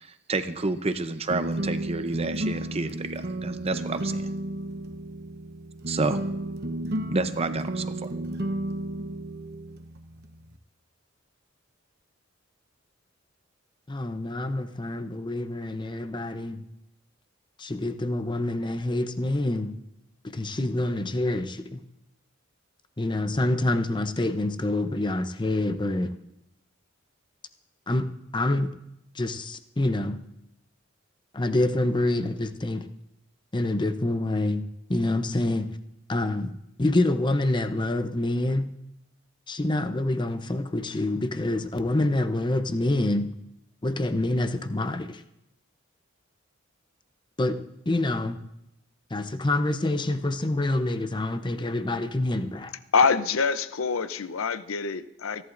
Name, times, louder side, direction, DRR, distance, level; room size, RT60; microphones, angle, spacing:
voice 1, 0.0-4.3 5.9-6.2 7.1-8.1, right 3 dB, 30° right, 10 dB, 0.7 m, -29 dB
sound 1, 1.3-10.6, right 1 dB, 55° right, 0.9 m, -33 dB
voice 2, 13.9-16.6 17.6-19.7 20.2-21.8 23.0-26.1 27.9-28.1 28.3-28.7 29.1-30.2 31.3-32.9 33.5-35.8 36.1-36.5 36.8-38.7 39.5-43.3 43.8-45.2 47.4-47.6 47.9-48.4 49.1-52.7, left 2 dB, 25° left, 9 dB, 0.7 m, -26 dB
voice 3, 52.9-55.4, left 5 dB, 90° left, 12 dB, 0.6 m, -25 dB
27.5 x 11.0 x 2.6 m, 0.85 s
head